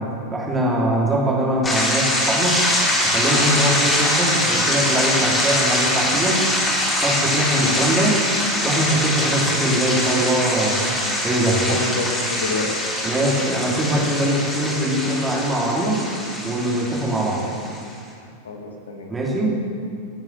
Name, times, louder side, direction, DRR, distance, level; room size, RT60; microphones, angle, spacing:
voice 1, 0.0-2.6 3.0-6.5 7.0-8.2 8.6-10.9 11.2-11.7 13.0-16.1 16.4-17.4 19.1-19.6, right 1 dB, 15° right, -4 dB, 3.2 m, -22 dB
sound 1, 1.6-17.8, left 1 dB, 15° left, 4.0 m, -23 dB
voice 2, 7.6-7.9 11.6-12.9 18.4-19.2, left 3 dB, 65° left, 3 dB, 1.9 m, -29 dB
26.5 x 8.9 x 3.4 m, 2.4 s
figure-of-eight pair, 90°, 0 cm